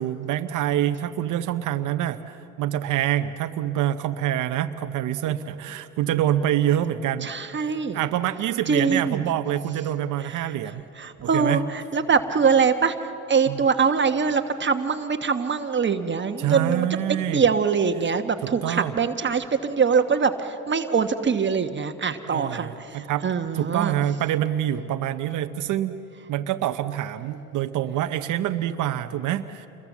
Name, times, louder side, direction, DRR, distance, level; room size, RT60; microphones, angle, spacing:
voice 1, 0.0-7.3 7.9-10.8 11.2-11.6 13.5-13.6 16.4-17.4 18.6-18.9 22.3-23.2 23.5-26.0 26.3-29.7, right 11 dB, 80° right, 8 dB, 0.7 m, -26 dB
voice 2, 7.2-8.0 8.7-9.2 10.2-10.5 11.0-24.0, right 5 dB, 40° right, 7 dB, 1.1 m, -23 dB
28.0 x 22.0 x 7.3 m, 2.9 s
cardioid pair, 90°, 30 cm